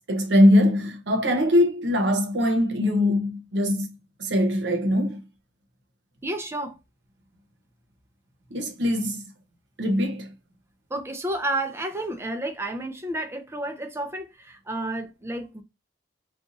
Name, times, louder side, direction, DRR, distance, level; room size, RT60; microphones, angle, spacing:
voice 1, 0.1-5.2 8.5-9.2 9.8-10.3, left 1 dB, 85° right, 0.8 m, -22 dB
voice 2, 6.2-6.7 10.9-15.6, right 1 dB, 15° right, 0.4 m, -31 dB
2.6 x 2.3 x 3.8 m
head